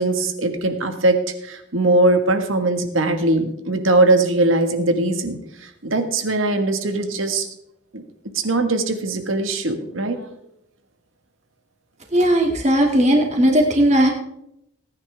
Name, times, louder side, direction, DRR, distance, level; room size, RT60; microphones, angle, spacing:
voice 1, 0.0-7.5 7.9-8.0 8.3-10.3, right 2 dB, 90° right, 6 dB, 1.7 m, -20 dB
voice 2, 12.1-14.1, right 1 dB, 35° right, 1 dB, 2.5 m, -17 dB
19.0 x 9.9 x 3.5 m, 0.78 s
head